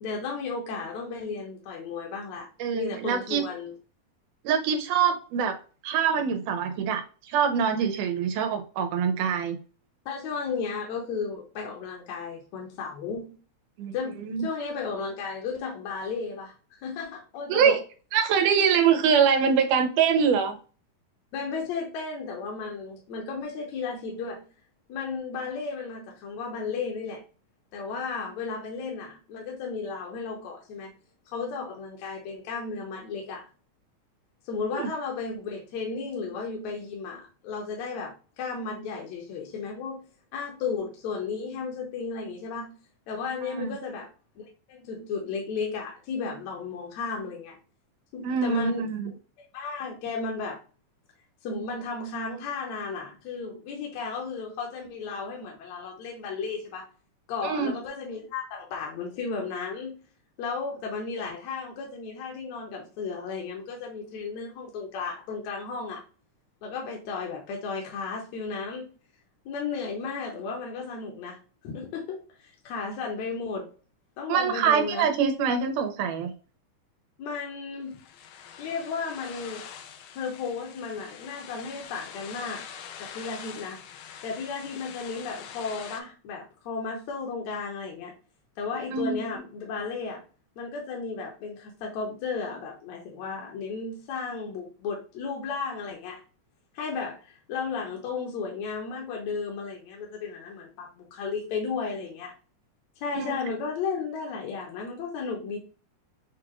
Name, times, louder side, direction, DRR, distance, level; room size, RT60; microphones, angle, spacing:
voice 1, 0.0-2.5 2.7-3.7 10.1-13.3 13.9-17.8 21.3-24.4 24.9-27.2 27.7-30.9 31.3-33.4 34.5-40.0 40.3-42.7 43.1-44.1 44.4-44.5 44.7-47.6 48.1-49.1 49.5-50.6 51.4-56.8 57.3-59.9 60.4-66.0 66.6-68.9 69.5-71.4 71.6-73.7 74.2-75.1 77.2-77.9 78.6-79.6 80.1-82.6 83.0-83.8 84.2-88.1 88.6-90.2 90.6-96.2 96.7-102.3 103.0-105.6, left 5 dB, 70° left, -1 dB, 2.0 m, -34 dB
voice 2, 2.6-3.4 4.4-5.6 5.8-7.0 7.3-9.6 13.8-14.5 17.5-17.8 18.1-20.6 34.8-34.9 43.4-43.8 48.2-49.1 57.4-57.7 74.3-76.3 88.9-89.2 103.1-103.4, right 7 dB, 90° right, 5 dB, 2.3 m, -24 dB
sound 1, 77.9-86.0, left 8 dB, 90° left, 2.1 m, -44 dB
6.5 x 2.4 x 3.0 m, 0.37 s
omnidirectional pair, 3.5 m